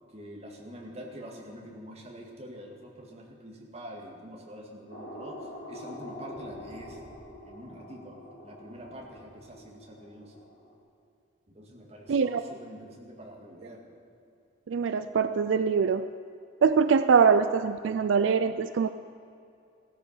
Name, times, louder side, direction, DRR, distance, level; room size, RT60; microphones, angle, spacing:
voice 1, 0.1-5.4 5.7-7.0 7.4-8.2 8.4-10.4 11.5-13.8, equal, 35° right, 0 dB, 2.1 m, -45 dB
sound 1, 4.9-10.7, equal, 65° left, 2.6 m, -45 dB
voice 2, 12.1-12.4 14.7-16.1 16.6-18.9, right 6 dB, 75° right, 12 dB, 0.4 m, -23 dB
15.5 x 13.5 x 5.7 m, 2.6 s
head